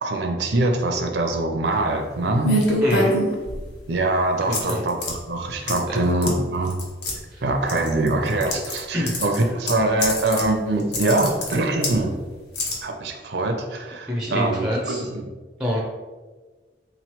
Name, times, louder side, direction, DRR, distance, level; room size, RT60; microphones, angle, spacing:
voice 1, 0.0-2.5 3.9-6.8 7.4-12.1 12.8-15.3, right 2 dB, 70° right, 3 dB, 0.5 m, -23 dB
sound 1, 2.4-3.8 4.5-5.1 5.7-6.0 6.2-6.3 6.7-7.1 7.7-8.8 9.1-10.5 10.8-12.0 12.5-12.7, left 1 dB, 70° left, 0.9 m, -25 dB
voice 2, 2.8-3.1 4.5-4.8 5.9-6.0 7.3-7.4 8.9-9.2 14.1-15.0 15.6-15.8, equal, 5° right, -2 dB, 0.4 m, -25 dB
3.8 x 3.0 x 2.9 m, 1.3 s
head